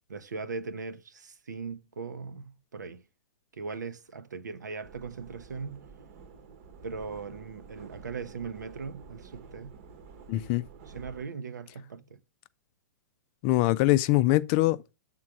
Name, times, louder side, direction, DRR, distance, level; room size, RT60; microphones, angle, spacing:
voice 1, 0.1-3.0 3.5-5.8 6.8-9.8 10.3-10.5 10.9-12.2, right 4 dB, 75° right, 0.7 m, -39 dB
sound 1, 4.8-11.2, right 5 dB, 50° right, 1.0 m, -50 dB
voice 2, 10.3-10.6 13.4-15.0, left 17 dB, 40° left, 0.4 m, -23 dB
7.4 x 3.8 x 5.9 m
figure-of-eight pair, 110°, 10 cm